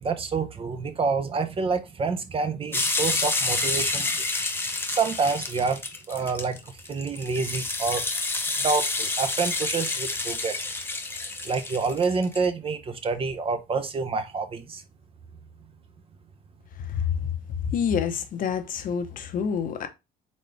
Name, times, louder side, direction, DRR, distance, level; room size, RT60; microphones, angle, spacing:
voice 1, 0.0-4.3 4.9-5.8 6.1-6.6 6.9-8.1 8.6-10.6 11.4-14.8, right 4 dB, 35° right, 0.7 m, -27 dB
sound 1, 2.7-12.4, left 3 dB, 15° left, 0.7 m, -29 dB
voice 2, 17.7-19.9, left 7 dB, 55° left, 0.8 m, -27 dB
4.2 x 3.7 x 3.3 m
cardioid pair, 110°, 17 cm